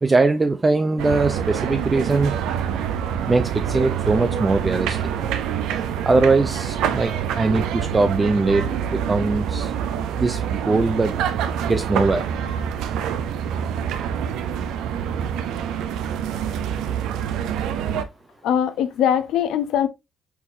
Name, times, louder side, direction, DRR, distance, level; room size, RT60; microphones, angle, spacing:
voice 1, 0.0-2.3 3.3-5.0 6.1-8.7 8.9-9.7 10.2-11.1 11.7-12.2, right 3 dB, 25° right, 0.4 m, -21 dB
sound 1, 1.0-18.0, right 8 dB, 90° right, 0.5 m, -26 dB
voice 2, 18.4-19.9, left 9 dB, 85° left, 0.6 m, -21 dB
4.7 x 4.0 x 2.6 m
cardioid pair, 90°, 0 cm